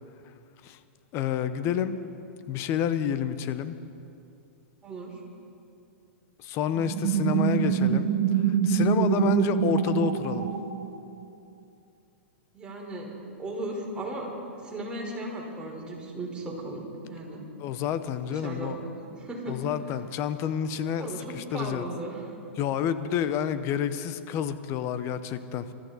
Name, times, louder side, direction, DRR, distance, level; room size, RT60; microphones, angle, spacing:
voice 1, 1.1-2.0 2.5-3.7 6.4-8.1 8.4-10.5 17.6-18.8 19.5-21.8 22.6-25.7, left 9 dB, 40° left, 12 dB, 1.0 m, -29 dB
voice 2, 4.8-5.2 12.5-13.1 13.4-14.3 14.6-17.5 18.3-19.5 21.0-22.3 23.4-23.6, right 2 dB, 15° right, -3 dB, 4.4 m, -36 dB
sound 1, 6.8-11.2, right 9 dB, 50° right, 1.6 m, -25 dB
24.5 x 13.5 x 4.2 m, 2.6 s
hypercardioid pair, 110°, 7 cm